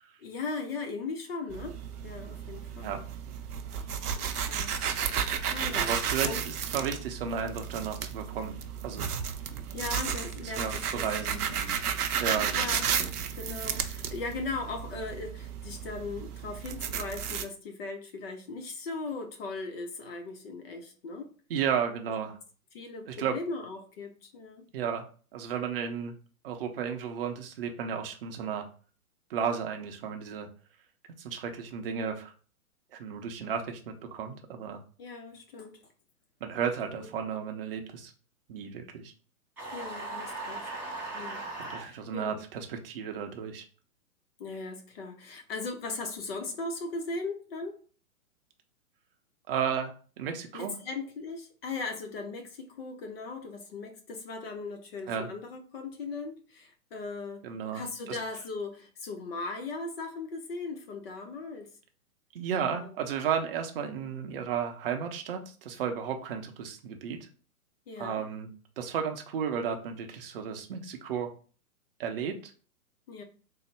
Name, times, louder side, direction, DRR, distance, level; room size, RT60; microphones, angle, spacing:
voice 1, 0.2-3.0 4.1-4.8 5.5-5.9 6.2-6.4 9.7-11.4 12.5-12.9 13.3-21.3 22.7-24.6 35.0-35.8 37.0-37.1 39.7-40.7 41.1-41.5 41.7-42.4 44.4-47.8 50.5-61.8 62.7-63.0 67.9-68.2 73.1-73.2, left 3 dB, 40° left, 0.7 m, -38 dB
sound 1, 1.5-17.4, right 8 dB, 80° right, 0.6 m, -33 dB
voice 2, 5.8-8.6 8.8-9.1 10.4-12.8 21.5-22.4 23.1-23.4 24.7-25.1 25.3-26.1 26.4-28.7 29.3-30.5 31.2-32.3 32.9-34.8 36.4-38.1 38.5-39.1 41.6-43.6 49.5-50.8 55.1-55.3 57.4-58.2 62.3-67.2 68.0-68.5 68.8-71.3 72.0-72.5, right 7 dB, 40° right, 0.6 m, -33 dB
sound 2, 39.6-41.9, right 2 dB, 5° right, 0.7 m, -38 dB
3.8 x 2.0 x 3.3 m
hypercardioid pair, 125°, 45 cm